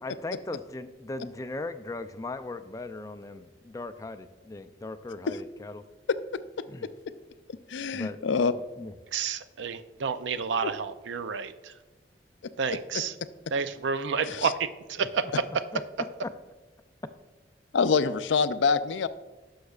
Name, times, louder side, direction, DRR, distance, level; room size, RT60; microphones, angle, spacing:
voice 1, 0.0-5.8 6.7-6.9 7.9-8.2 8.8-8.9 14.3-14.4 15.0-15.8 16.2-16.3, left 2 dB, 20° left, 10 dB, 0.3 m, -38 dB
voice 2, 7.7-8.5 10.6-10.7 14.2-14.5 17.7-19.1, left 5 dB, 90° left, 13 dB, 0.4 m, -25 dB
voice 3, 9.1-11.7 12.6-13.1 13.5-15.2, right 5 dB, 90° right, 12 dB, 0.5 m, -30 dB
11.5 x 6.4 x 2.4 m, 1.2 s
head